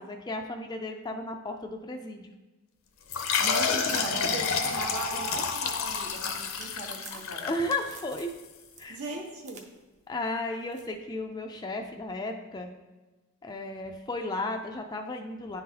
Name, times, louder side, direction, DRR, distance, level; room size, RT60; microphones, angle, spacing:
voice 1, 0.0-2.3 7.1-8.3 8.8-9.0 10.1-12.7 13.4-15.6, left 2 dB, 20° left, 4 dB, 0.3 m, -34 dB
sound 1, 3.1-8.2, left 5 dB, 60° left, 0.6 m, -29 dB
voice 2, 3.4-7.5 8.9-9.6, right 2 dB, 75° right, -1 dB, 1.1 m, -38 dB
sound 2, 3.8-7.6 7.9-8.4 8.7-9.7 9.9-10.0 10.7-11.0, right 4 dB, 30° right, 0.6 m, -48 dB
9.9 x 3.8 x 2.8 m, 1.2 s
head